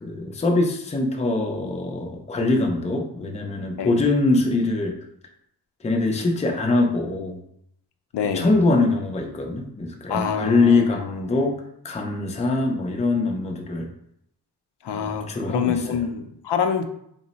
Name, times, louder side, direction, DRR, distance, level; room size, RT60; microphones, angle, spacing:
voice 1, 0.0-5.0 5.8-7.4 8.3-13.9 14.9-16.0, left 2 dB, 20° left, 2 dB, 0.4 m, -23 dB
voice 2, 8.1-8.5 10.1-10.9 14.8-16.8, left 7 dB, 85° left, 6 dB, 0.5 m, -26 dB
3.6 x 2.0 x 4.0 m, 0.73 s
wide cardioid pair, 135°, 40 cm